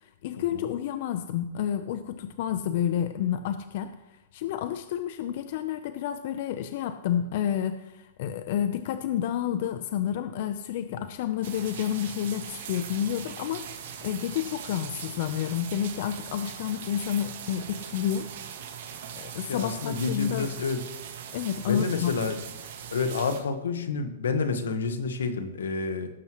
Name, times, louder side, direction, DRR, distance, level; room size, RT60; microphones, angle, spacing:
voice 1, 0.0-4.0 4.3-18.3 19.1-20.5 21.3-22.1, left 10 dB, 55° left, 10 dB, 0.6 m, -30 dB
sound 1, 11.4-23.4, right 8 dB, 60° right, 1.8 m, -40 dB
voice 2, 19.2-20.8 21.7-22.4 22.9-26.1, left 4 dB, 85° left, 9 dB, 1.3 m, -29 dB
17.5 x 7.6 x 3.1 m, 0.93 s
hypercardioid pair, 140°, 0 cm